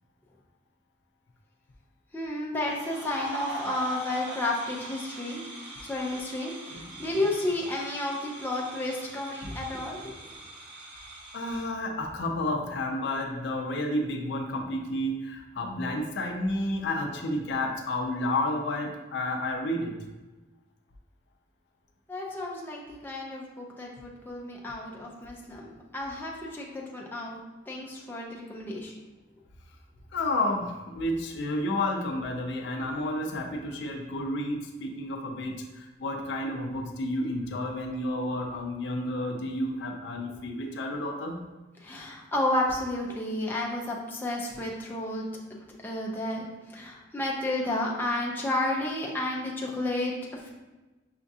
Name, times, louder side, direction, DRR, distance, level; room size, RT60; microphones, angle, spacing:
voice 1, 2.1-5.4 5.8-10.1 22.1-27.4 27.7-28.9 41.8-45.2 45.8-50.5, left 1 dB, 10° left, -3 dB, 0.5 m, -32 dB
sound 1, 2.6-11.7, right 1 dB, 60° right, 1.0 m, -42 dB
voice 2, 6.7-7.0 9.4-9.5 11.3-20.0 30.1-41.4, left 1 dB, 60° left, 3 dB, 0.5 m, -31 dB
5.7 x 2.3 x 2.7 m, 1.1 s
head